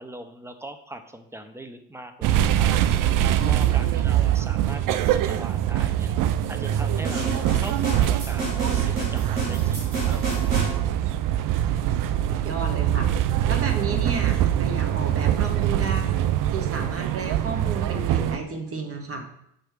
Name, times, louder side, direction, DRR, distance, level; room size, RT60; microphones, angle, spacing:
voice 1, 0.0-2.7 3.3-6.1 6.5-10.2, right 1 dB, 5° right, 7 dB, 0.6 m, -40 dB
sound 1, 2.2-18.4, right 11 dB, 50° right, 0.5 m, -23 dB
voice 2, 3.4-4.0 10.9-11.0 12.3-13.1 13.5-16.2 16.5-19.3, right 3 dB, 35° right, 4 dB, 1.3 m, -32 dB
sound 2, 7.0-10.7, right 2 dB, 85° right, 2.3 m, -31 dB
6.5 x 3.2 x 4.5 m, 0.75 s
hypercardioid pair, 60°, 41 cm